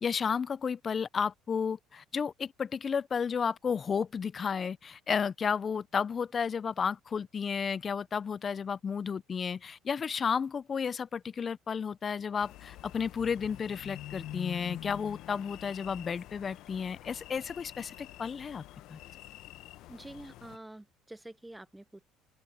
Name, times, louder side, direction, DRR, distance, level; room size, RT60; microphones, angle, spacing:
voice 1, 0.0-18.6 18.9-19.0, left 6 dB, 30° left, 0.4 m, -32 dB
sound 1, 12.4-20.6, left 14 dB, 70° left, 0.8 m, -46 dB
voice 2, 19.9-22.0, right 1 dB, 5° right, 0.7 m, -47 dB
open air
cardioid pair, 110°, 0 cm